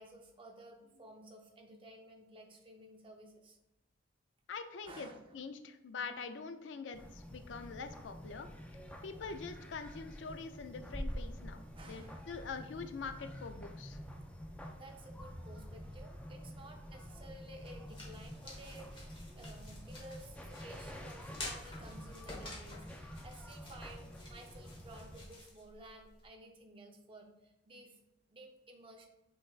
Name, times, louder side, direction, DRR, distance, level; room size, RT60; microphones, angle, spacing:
voice 1, 0.0-3.6 4.8-5.4 11.7-12.5 14.8-28.0 28.3-29.1, right 1 dB, 30° right, 1 dB, 0.7 m, -54 dB
voice 2, 4.5-8.5 9.0-14.0, left 5 dB, 85° left, 8 dB, 0.4 m, -44 dB
sound 1, 6.9-25.3, equal, 5° left, 0.4 m, -48 dB
sound 2, 17.3-26.3, left 2 dB, 25° left, 1.2 m, -51 dB
6.2 x 3.4 x 2.4 m, 0.93 s
head